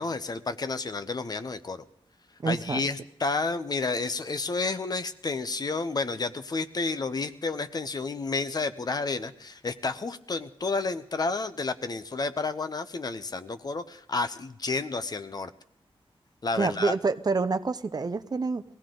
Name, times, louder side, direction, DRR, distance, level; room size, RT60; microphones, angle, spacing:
voice 1, 0.0-1.8 2.5-15.5 16.4-16.9, left 3 dB, 40° left, 10 dB, 0.9 m, -31 dB
voice 2, 2.4-2.9 16.5-18.6, right 4 dB, 40° right, 12 dB, 0.7 m, -27 dB
22.5 x 16.5 x 3.9 m, 0.69 s
wide cardioid pair, 105°, 10 cm